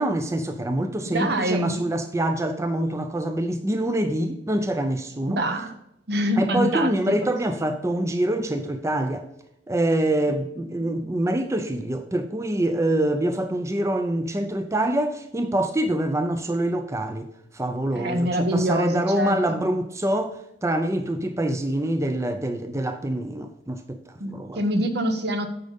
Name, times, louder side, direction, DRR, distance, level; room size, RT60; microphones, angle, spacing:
voice 1, 0.0-5.4 6.4-9.3 9.7-24.6, right 1 dB, 15° right, 0.5 m, -25 dB
voice 2, 1.1-1.9 5.2-5.7 6.1-7.1 17.9-19.6 24.2-25.5, equal, 65° right, 1.0 m, -25 dB
8.7 x 5.2 x 5.2 m
head